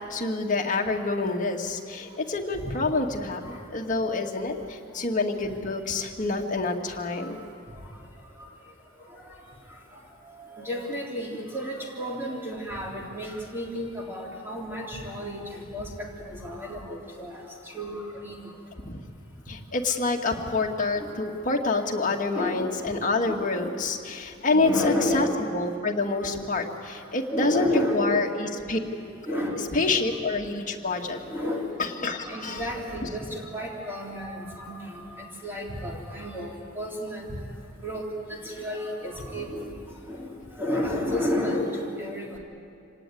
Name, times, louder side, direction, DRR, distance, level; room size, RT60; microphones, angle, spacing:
voice 1, 0.1-7.4 18.8-19.0 19.5-25.3 25.5-27.7 27.9-28.8 29.7-31.2 31.8-32.7, left 3 dB, 40° left, 1 dB, 2.1 m, -27 dB
voice 2, 10.3-15.9 16.2-17.4 17.7-18.4 22.3-22.6 23.3-23.8 24.5-25.4 27.3-28.2 29.3-30.1 31.1-31.7 32.2-37.3 37.8-38.0 38.3-39.7 40.1-42.4, left 1 dB, 10° right, -3 dB, 3.6 m, -31 dB
26.0 x 18.5 x 9.4 m, 2.6 s
head